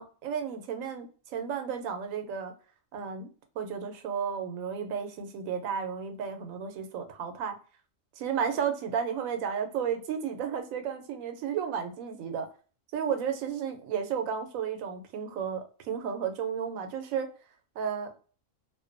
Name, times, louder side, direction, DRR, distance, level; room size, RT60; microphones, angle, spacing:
voice 1, 0.0-2.5 2.9-3.3 3.6-7.6 8.2-12.5 12.9-17.3 17.8-18.2, right 7 dB, 85° right, 6 dB, 1.0 m, -33 dB
2.5 x 2.2 x 2.4 m, 0.39 s
omnidirectional pair, 1.4 m